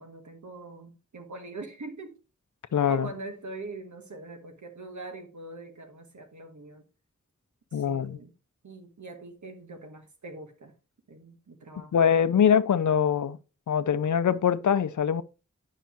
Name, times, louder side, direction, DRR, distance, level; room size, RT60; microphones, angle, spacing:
voice 1, 0.0-2.2 2.9-6.8 7.7-8.3 8.6-10.7 11.1-12.0, right 2 dB, 90° right, 1.3 m, -43 dB
voice 2, 2.7-3.1 7.7-8.2 11.9-13.4 13.7-15.2, left 8 dB, 85° left, 0.5 m, -23 dB
9.3 x 5.5 x 2.9 m
wide cardioid pair, 80°, 29 cm